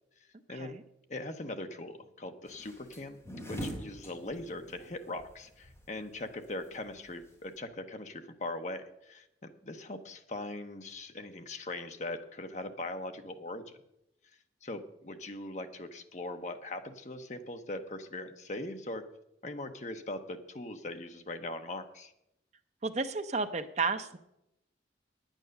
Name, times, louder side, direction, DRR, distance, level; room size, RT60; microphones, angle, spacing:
voice 1, 0.5-0.8 22.8-24.2, right 4 dB, 35° right, 10 dB, 0.6 m, -32 dB
voice 2, 1.1-3.2 3.5-13.8 14.6-19.0 19.4-22.1, left 2 dB, 40° left, 7 dB, 0.9 m, -40 dB
sound 1, 2.5-7.6, equal, 15° left, 2.6 m, -44 dB
9.8 x 9.1 x 6.5 m, 0.83 s
head